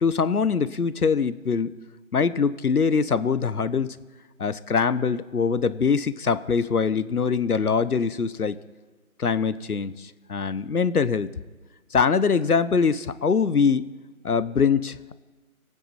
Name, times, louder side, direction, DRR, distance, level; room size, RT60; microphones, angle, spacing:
voice 1, 0.0-1.8 2.1-4.0 4.4-8.6 9.2-11.3 11.9-13.9 14.2-15.1, left 5 dB, 85° left, 15 dB, 1.1 m, -23 dB
26.0 x 9.4 x 4.3 m, 1.3 s
figure-of-eight pair, 170°, 44 cm